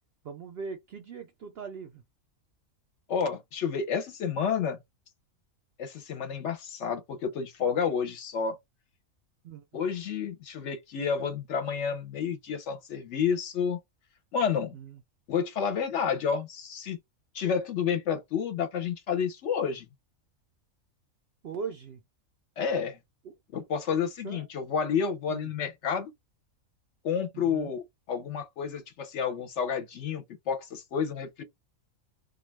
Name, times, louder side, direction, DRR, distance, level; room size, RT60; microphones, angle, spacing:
voice 1, 0.2-2.0 9.4-9.6 14.7-15.0 21.4-22.0 23.3-23.4 24.2-24.4 25.3-25.4 27.3-27.7, right 6 dB, 65° right, 0.6 m, -40 dB
voice 2, 3.1-4.8 5.8-8.6 9.7-13.8 14.3-14.7 15.3-17.0 17.3-19.9 22.6-23.0 23.5-26.1 27.0-27.8 28.1-31.4, left 7 dB, 65° left, 0.8 m, -30 dB
2.3 x 2.3 x 3.1 m
omnidirectional pair, 1.5 m